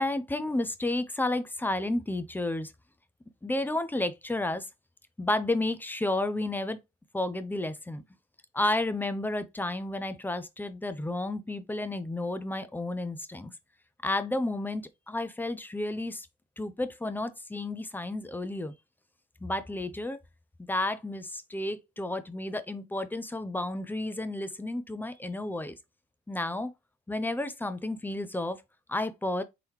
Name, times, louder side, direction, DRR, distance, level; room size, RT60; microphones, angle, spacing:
voice 1, 0.0-2.7 3.4-4.6 5.2-6.8 7.1-8.0 8.5-13.5 14.0-16.3 16.6-18.7 19.4-20.2 20.7-25.7 26.3-26.7 27.1-28.6 28.9-29.4, left 2 dB, 10° left, 0.5 m, -31 dB
3.8 x 2.9 x 3.2 m
cardioid pair, 90°, 20 cm